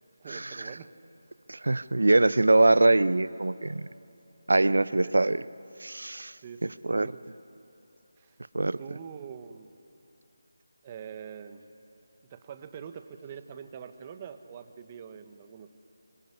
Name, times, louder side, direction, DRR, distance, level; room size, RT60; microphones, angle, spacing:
voice 1, 0.2-0.9 4.5-5.1 6.4-7.2 8.2-8.4 8.8-9.7 10.8-11.7 12.3-15.7, right 7 dB, 25° right, 9 dB, 1.3 m, -44 dB
voice 2, 1.5-3.9 4.5-5.4 5.8-6.3 6.8-7.1 8.5-8.8, right 2 dB, 75° right, 17 dB, 0.8 m, -23 dB
26.0 x 23.5 x 9.9 m, 2.8 s
figure-of-eight pair, 165°, 0 cm